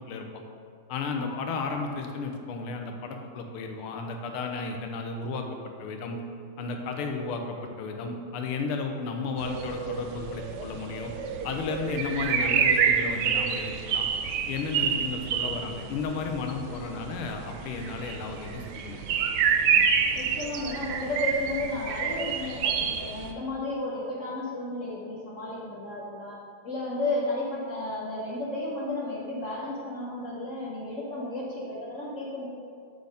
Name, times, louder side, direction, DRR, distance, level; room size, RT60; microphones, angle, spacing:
voice 1, 0.9-5.4 5.8-6.2 6.6-11.1 11.4-14.1 14.5-19.0 19.7-19.8, left 4 dB, 90° left, 4 dB, 1.6 m, -33 dB
sound 1, 9.4-23.3, right 7 dB, 85° right, 0.9 m, -28 dB
voice 2, 20.1-32.5, left 2 dB, 60° left, -5 dB, 0.8 m, -33 dB
6.9 x 4.1 x 5.0 m, 2.3 s
omnidirectional pair, 2.4 m